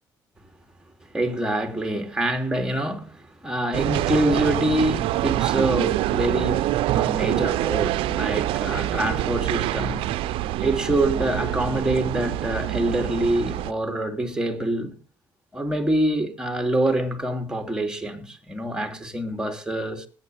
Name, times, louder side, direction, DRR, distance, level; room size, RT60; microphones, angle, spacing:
voice 1, 1.1-10.2 10.6-15.0 15.5-20.1, right 1 dB, 10° right, 2.9 m, -25 dB
sound 1, 3.7-13.7, right 14 dB, 85° right, 0.5 m, -25 dB
20.5 x 9.1 x 3.4 m
cardioid pair, 75°, 9 cm